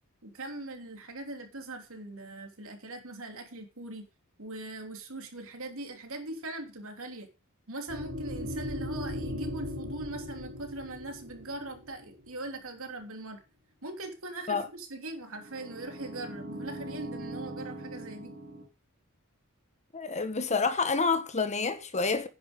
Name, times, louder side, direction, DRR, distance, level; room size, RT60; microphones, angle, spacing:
voice 1, 0.2-4.0 4.4-7.3 7.7-13.4 13.8-18.4, right 2 dB, 65° right, 3.3 m, -41 dB
sound 1, 7.9-12.3 15.3-18.7, equal, 50° right, 2.8 m, -39 dB
voice 2, 19.9-22.3, left 4 dB, 30° left, 1.4 m, -28 dB
10.5 x 10.0 x 5.3 m
head